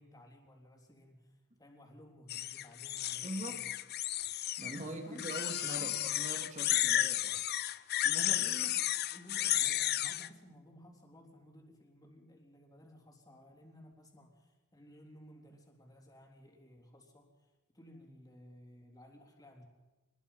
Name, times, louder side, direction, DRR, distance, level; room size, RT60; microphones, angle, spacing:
voice 1, 0.0-3.8 4.8-5.3 5.7-6.0 8.4-19.6, equal, 15° left, 1 dB, 3.6 m, -56 dB
sound 1, 2.3-4.8 5.2-10.3, left 13 dB, 45° left, 0.6 m, -33 dB
voice 2, 3.2-3.6 4.6-7.4 8.0-8.5, right 1 dB, 35° right, 4 dB, 2.7 m, -43 dB
25.5 x 20.5 x 5.7 m, 1.1 s
head